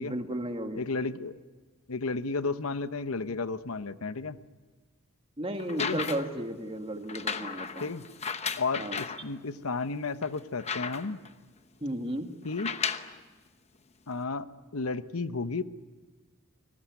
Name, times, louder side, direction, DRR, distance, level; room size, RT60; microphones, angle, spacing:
voice 1, 0.0-0.8 5.4-7.9 8.8-9.0 11.8-12.3, right 1 dB, 25° right, 5 dB, 2.1 m, -34 dB
voice 2, 0.7-1.4 1.9-4.4 5.8-6.0 7.8-8.0 8.6-11.2 12.4-12.7 14.1-14.5 14.7-15.6, left 3 dB, 75° left, 12 dB, 0.9 m, -32 dB
sound 1, 5.6-6.4 7.1-9.2 9.8-9.9 10.2-11.3 12.5-13.2 14.1-14.2, left 6 dB, 30° left, 1.0 m, -35 dB
29.5 x 19.5 x 9.7 m, 1.3 s
head